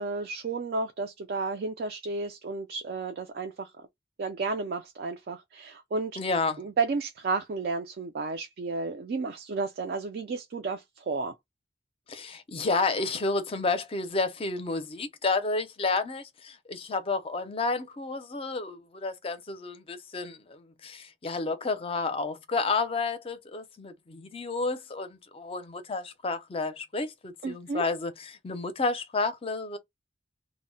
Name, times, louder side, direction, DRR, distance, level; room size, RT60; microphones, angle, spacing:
voice 1, 0.0-3.7 4.2-6.2 6.6-11.3 27.4-27.8, right 3 dB, 55° right, 0.4 m, -32 dB
voice 2, 6.2-6.6 12.1-29.8, left 3 dB, 30° left, 0.5 m, -31 dB
2.1 x 2.0 x 3.6 m
head